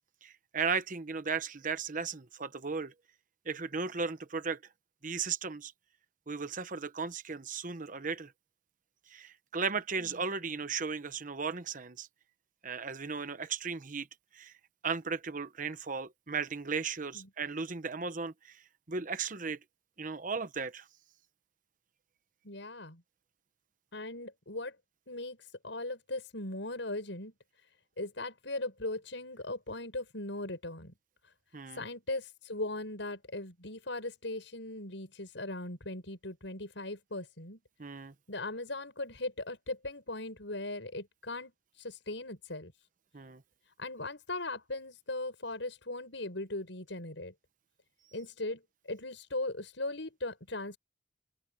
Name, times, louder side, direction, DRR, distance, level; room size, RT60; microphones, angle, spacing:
voice 1, 0.2-2.9 3.5-4.6 5.0-5.7 6.3-8.3 9.1-12.1 12.6-14.1 14.3-14.5 14.8-18.6 18.9-19.6 20.0-20.8 31.5-31.8 37.8-38.1 43.1-43.4, right 5 dB, 45° right, 1.0 m, -36 dB
voice 2, 22.4-23.0 23.9-24.8 25.1-27.3 28.0-30.9 31.7-37.6 38.3-42.7 43.8-47.3 48.1-50.8, left 2 dB, 80° left, 6.4 m, -39 dB
open air
head